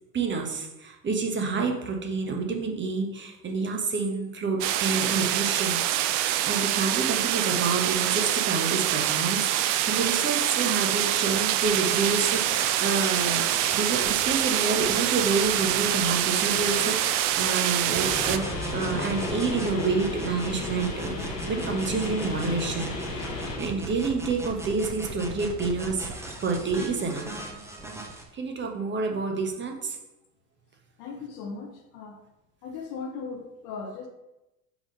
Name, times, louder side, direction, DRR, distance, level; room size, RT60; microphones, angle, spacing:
voice 1, 0.1-5.8 6.1-23.3 23.6-27.3 28.3-30.0, right 4 dB, 25° right, 2 dB, 1.1 m, -28 dB
sound 1, 4.6-18.4, right 12 dB, 50° right, 0.5 m, -25 dB
sound 2, 11.6-28.2, right 2 dB, 5° right, 0.9 m, -38 dB
sound 3, 18.0-23.6, left 3 dB, 80° left, 1.6 m, -34 dB
voice 2, 31.0-32.2 32.6-34.1, left 4 dB, 50° left, 3 dB, 0.9 m, -38 dB
4.7 x 3.7 x 5.5 m, 0.96 s
hypercardioid pair, 80°, 47 cm